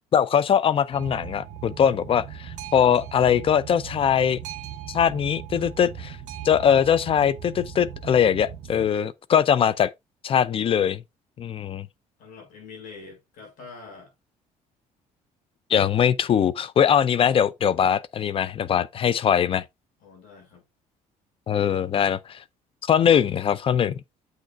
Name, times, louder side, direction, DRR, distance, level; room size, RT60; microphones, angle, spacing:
voice 1, 0.1-4.4 4.9-6.2 6.4-9.9 10.2-11.0 11.4-11.9 15.7-19.6 21.5-22.4 22.9-24.0, left 8 dB, 40° left, 0.5 m, -21 dB
Boat Water vehicle, 0.9-8.9, right 9 dB, 60° right, 1.6 m, -39 dB
voice 2, 12.2-14.1 20.0-20.6, left 4 dB, 70° left, 5.2 m, -45 dB
8.0 x 6.5 x 2.4 m
cardioid pair, 110°, 14 cm